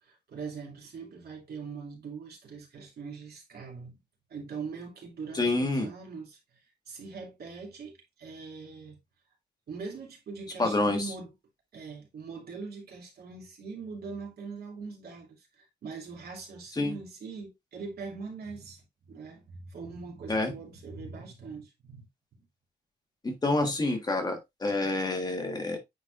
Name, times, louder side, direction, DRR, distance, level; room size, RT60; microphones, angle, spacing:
voice 1, 0.0-4.0 4.3-9.0 9.7-11.3 11.7-22.0, right 4 dB, 65° right, 2.6 m, -42 dB
voice 2, 5.3-5.9 10.6-11.0 16.8-17.0 20.3-20.5 23.2-25.8, left 2 dB, 25° left, 1.5 m, -28 dB
9.2 x 4.2 x 2.5 m
wide cardioid pair, 145°, 17 cm